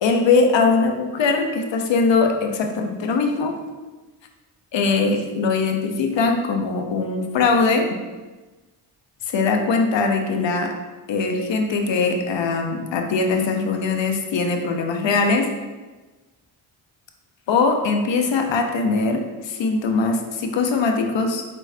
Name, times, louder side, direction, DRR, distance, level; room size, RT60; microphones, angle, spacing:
voice 1, 0.0-3.5 4.7-7.9 9.3-10.7 11.1-15.5 17.5-21.4, left 4 dB, 65° left, 4 dB, 0.8 m, -21 dB
4.5 x 4.4 x 2.7 m, 1.2 s
cardioid pair, 55°, 48 cm